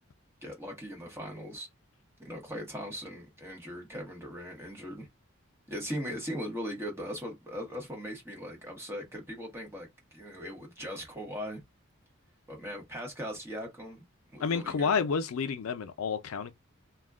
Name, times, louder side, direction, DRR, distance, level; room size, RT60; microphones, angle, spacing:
voice 1, 0.4-1.7 2.2-5.1 5.7-11.6 12.5-14.0 14.3-14.9, equal, 10° right, 0.8 m, -39 dB
voice 2, 14.4-16.5, left 5 dB, 80° left, 0.4 m, -30 dB
2.3 x 2.1 x 3.4 m
head